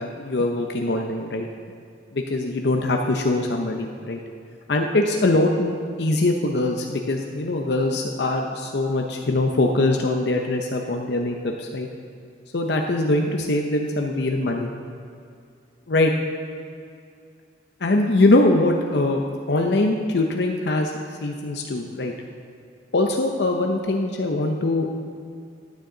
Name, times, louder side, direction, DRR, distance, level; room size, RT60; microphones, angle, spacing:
voice 1, 0.0-1.5 2.1-4.2 4.7-11.9 12.5-14.7 15.9-16.1 17.8-19.2 19.5-20.9 21.2-22.1 22.9-24.9, left 2 dB, 65° left, 2 dB, 0.7 m, -22 dB
15.5 x 9.6 x 3.9 m, 2.3 s
head